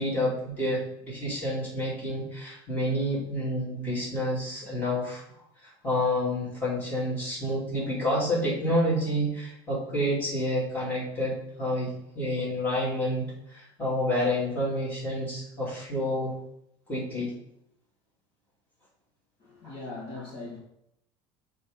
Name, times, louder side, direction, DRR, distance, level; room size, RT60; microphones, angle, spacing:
voice 1, 0.0-5.2 5.8-16.3 16.9-17.4 19.6-19.7, equal, 15° left, -7 dB, 2.8 m, -29 dB
voice 2, 19.4-20.6, left 2 dB, 45° left, -4 dB, 1.7 m, -40 dB
6.4 x 3.8 x 5.4 m, 0.78 s
cardioid pair, 170°, 12 cm